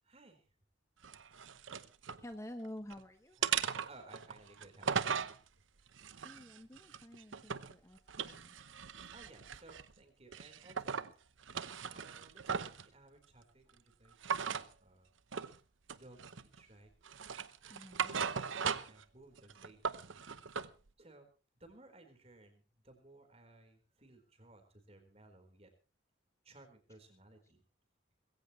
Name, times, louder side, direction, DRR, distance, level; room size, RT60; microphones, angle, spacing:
voice 1, 0.0-0.5 3.4-3.5 3.9-5.2 9.1-10.9 11.9-15.1 16.0-16.9 18.0-20.2 21.0-21.3 21.6-25.7 26.4-27.6, right 2 dB, 30° right, 5 dB, 4.3 m, -59 dB
sound 1, 1.0-2.2 2.6-3.0 3.4-5.4 5.9-7.7 8.1-9.9 10.3-11.1 11.4-12.8 14.2-14.7 15.3-15.6 15.9-16.6 17.0-19.0 19.4-20.7, right 6 dB, 90° right, 0.9 m, -38 dB
voice 2, 2.2-3.4 6.2-8.5 17.7-18.2, left 1 dB, 15° left, 8 dB, 0.9 m, -49 dB
21.0 x 16.5 x 3.2 m, 0.34 s
head